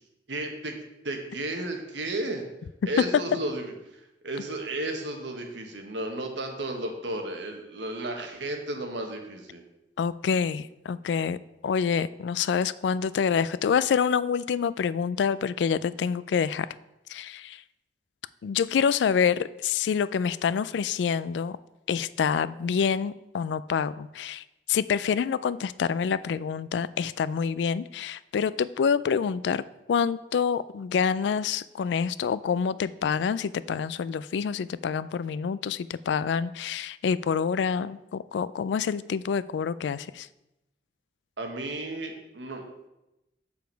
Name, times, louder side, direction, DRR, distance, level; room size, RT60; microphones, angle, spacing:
voice 1, 0.3-0.7 1.0-2.5 2.9-3.7 4.2-9.6 41.4-42.6, right 1 dB, 80° right, 3 dB, 1.3 m, -33 dB
voice 2, 10.0-11.4 11.6-16.7 17.1-17.6 18.4-21.6 21.9-24.4 24.7-29.6 29.9-40.3, left 6 dB, 70° left, 17 dB, 0.3 m, -27 dB
7.1 x 6.9 x 4.5 m, 0.93 s
head